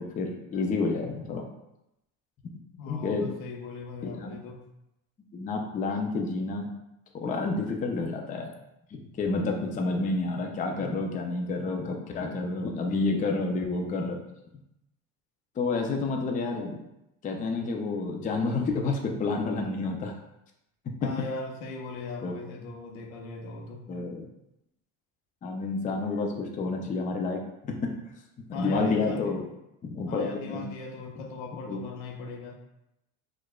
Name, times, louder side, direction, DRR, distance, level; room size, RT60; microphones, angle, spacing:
voice 1, 0.0-1.5 2.9-3.3 4.2-4.3 5.3-6.7 7.1-8.5 8.9-14.2 15.6-16.8 17.2-20.1 22.2-22.4 23.9-24.3 25.4-27.9 28.5-29.4 29.8-30.6 31.7-31.8, left 3 dB, 20° left, 2 dB, 0.4 m, -29 dB
voice 2, 2.7-4.7 21.0-23.9 28.5-29.4 30.1-32.6, left 4 dB, 75° left, 2 dB, 0.8 m, -39 dB
4.5 x 2.4 x 2.2 m, 0.87 s
supercardioid pair, 90°, 39 cm